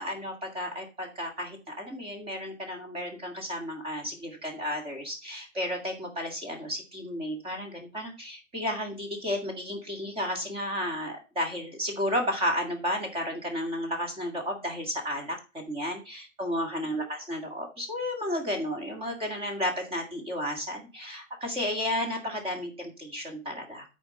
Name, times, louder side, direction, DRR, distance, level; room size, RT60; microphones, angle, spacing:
voice 1, 0.0-23.8, left 1 dB, 15° right, 2 dB, 2.1 m, -33 dB
7.8 x 4.6 x 6.5 m, 0.31 s
hypercardioid pair, 145°, 39 cm